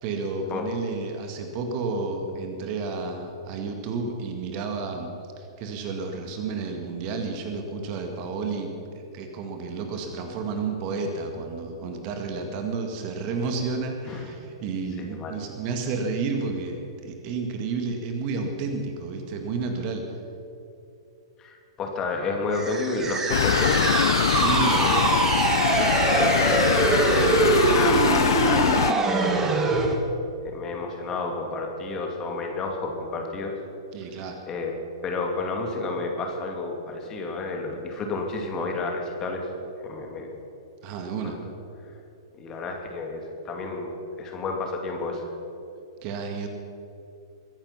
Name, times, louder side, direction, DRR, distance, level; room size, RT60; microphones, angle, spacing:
voice 1, 0.0-5.1 5.4-8.7 9.1-20.1 24.3-24.9 33.9-34.4 40.8-41.4 46.0-46.5, right 4 dB, 35° right, 4 dB, 2.0 m, -31 dB
voice 2, 15.0-15.4 21.4-24.0 24.7-25.0 25.7-28.8 29.1-30.1 30.4-33.5 34.5-34.7 35.0-39.5 39.8-40.3 41.2-41.4 42.4-43.9 44.2-45.2, left 3 dB, 25° left, 2 dB, 2.5 m, -31 dB
sound 1, 22.5-30.0, right 3 dB, 15° right, 1.6 m, -23 dB
sound 2, 23.3-28.9, left 9 dB, 60° left, 0.3 m, -23 dB
22.5 x 10.5 x 5.8 m, 2.8 s
figure-of-eight pair, 105°, 2 cm